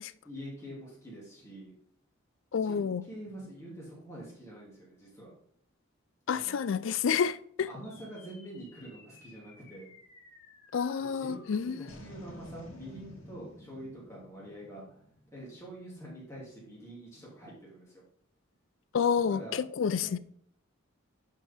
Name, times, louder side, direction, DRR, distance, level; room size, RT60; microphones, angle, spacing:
voice 1, 0.2-1.7 2.6-5.3 6.3-6.6 7.7-9.9 11.0-15.0 15.3-18.0 19.3-19.6 20.0-20.2, right 1 dB, 15° left, 2.5 m, -46 dB
voice 2, 2.5-3.0 6.3-7.7 10.7-11.8 18.9-20.2, left 6 dB, 70° left, 0.4 m, -29 dB
sound 1, 7.8-16.4, left 1 dB, 90° left, 2.2 m, -53 dB
11.0 x 4.5 x 3.6 m
head